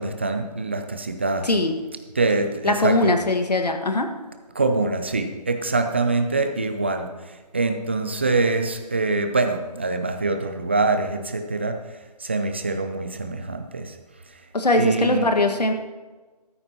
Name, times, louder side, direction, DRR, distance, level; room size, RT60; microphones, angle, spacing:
voice 1, 0.0-1.5 2.2-3.1 4.5-7.1 7.5-11.8 12.2-14.0 14.8-15.3, right 3 dB, 15° right, 7 dB, 0.5 m, -24 dB
voice 2, 1.4-1.8 2.6-4.1 14.5-15.7, left 2 dB, 80° left, 5 dB, 1.7 m, -21 dB
13.5 x 13.5 x 3.0 m, 1.3 s
figure-of-eight pair, 160°, 21 cm